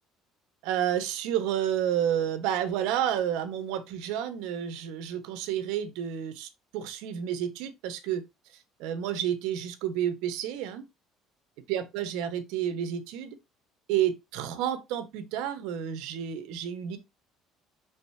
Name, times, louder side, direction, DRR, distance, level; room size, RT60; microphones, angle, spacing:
voice 1, 0.6-8.2 8.8-10.8 11.7-13.3 13.9-17.0, right 10 dB, 85° right, 1.2 m, -30 dB
6.5 x 5.3 x 2.7 m
cardioid pair, 130°, 0 cm